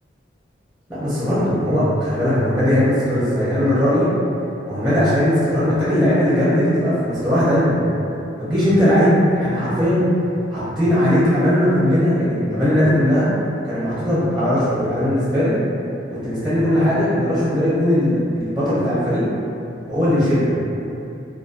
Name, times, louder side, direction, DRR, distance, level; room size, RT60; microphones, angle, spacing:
voice 1, 0.9-4.1 4.7-7.8 8.4-10.1 10.5-13.3 13.6-15.6 16.1-19.2 19.9-20.5, equal, ahead, -12 dB, 0.6 m, -18 dB
2.5 x 2.3 x 2.4 m, 2.7 s
head